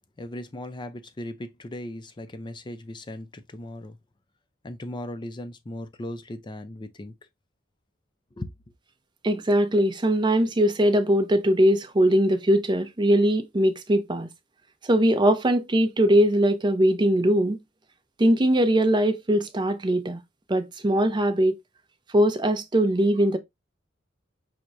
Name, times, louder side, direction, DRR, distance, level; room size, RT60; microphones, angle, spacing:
voice 1, 0.2-4.0 4.6-7.1 8.4-8.5, left 1 dB, 25° left, 0.4 m, -37 dB
voice 2, 9.2-14.3 14.8-17.6 18.2-20.2 20.5-21.5 22.1-23.4, right 1 dB, 25° right, 0.5 m, -21 dB
5.9 x 2.1 x 2.5 m
head